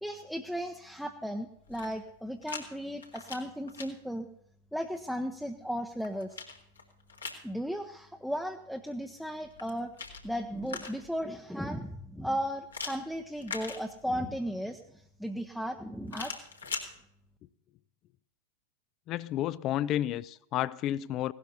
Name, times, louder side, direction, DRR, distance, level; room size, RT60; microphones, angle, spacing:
voice 1, 0.0-4.3 4.7-6.4 7.4-9.9 10.2-16.3, equal, ahead, 0.8 m, -35 dB
sound 1, 1.6-2.6 3.0-3.9 5.6-7.5 9.4-11.2 12.7-14.3 16.1-16.9, left 4 dB, 75° left, 1.9 m, -42 dB
voice 2, 19.1-21.3, left 12 dB, 35° left, 0.5 m, -31 dB
17.0 x 12.0 x 4.1 m
figure-of-eight pair, 90°, 0 cm